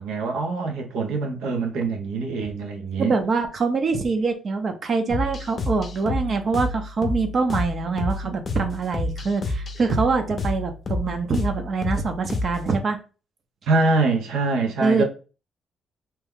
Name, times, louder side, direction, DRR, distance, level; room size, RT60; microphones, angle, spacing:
voice 1, 0.0-3.1 8.2-8.4 13.7-15.0, right 3 dB, 85° right, 0.8 m, -24 dB
voice 2, 3.0-13.0 14.8-15.0, right 4 dB, 45° right, 0.7 m, -24 dB
sound 1, 5.1-12.7, left 2 dB, 45° left, 0.6 m, -29 dB
2.9 x 2.3 x 3.5 m
cardioid pair, 90°, 0 cm